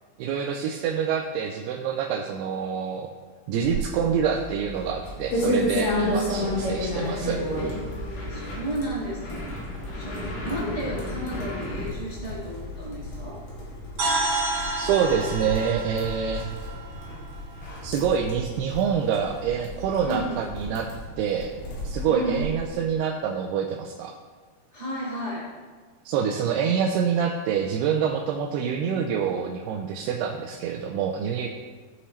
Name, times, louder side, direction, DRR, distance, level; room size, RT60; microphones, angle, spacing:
voice 1, 0.2-3.1 3.5-7.4 14.8-16.5 17.8-20.9 21.2-21.5 21.8-24.1 26.1-31.5, right 7 dB, 85° right, 1 dB, 2.6 m, -26 dB
sound 1, 3.6-22.7, left 1 dB, 85° left, 4.2 m, -33 dB
sound 2, 6.3-11.9, left 1 dB, 70° left, 3.7 m, -36 dB
voice 2, 6.6-7.6 8.3-9.5 9.9-13.4 20.0-20.5 22.1-22.5 24.7-25.5, equal, 25° right, -8 dB, 0.9 m, -33 dB
sound 3, 14.0-17.9, right 2 dB, 60° right, 3.7 m, -30 dB
15.5 x 5.6 x 3.2 m, 1.5 s
omnidirectional pair, 4.6 m